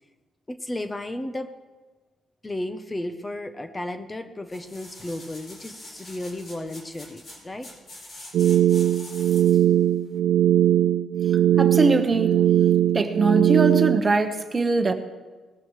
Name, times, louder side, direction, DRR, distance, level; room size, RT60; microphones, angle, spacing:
voice 1, 0.5-1.5 2.4-7.7, left 1 dB, 20° left, 9 dB, 0.8 m, -34 dB
sound 1, 4.5-9.7 10.2-10.3, left 1 dB, 35° left, 4.7 m, -44 dB
sound 2, 8.3-14.0, right 11 dB, 75° right, 0.3 m, -20 dB
voice 2, 11.6-12.5 12.9-14.9, right 3 dB, 30° right, 7 dB, 1.2 m, -22 dB
19.0 x 13.5 x 3.2 m, 1.3 s
cardioid pair, 90°, 0 cm